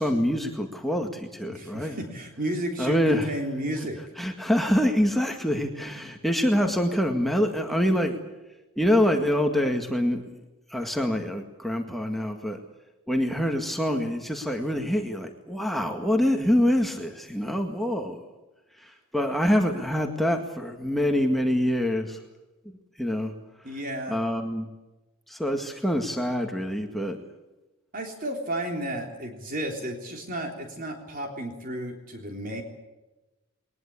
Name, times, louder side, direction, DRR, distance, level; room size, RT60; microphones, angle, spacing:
voice 1, 0.0-2.0 2.8-3.3 4.2-8.2 8.8-10.2 10.7-12.6 13.1-18.2 18.8-22.2 23.0-23.3 24.1-24.7 25.3-27.2, equal, ahead, 3 dB, 1.9 m, -25 dB
voice 2, 1.4-4.0 23.6-24.2 27.9-32.6, right 1 dB, 40° right, 3 dB, 3.6 m, -33 dB
22.0 x 20.5 x 8.5 m, 1.1 s
head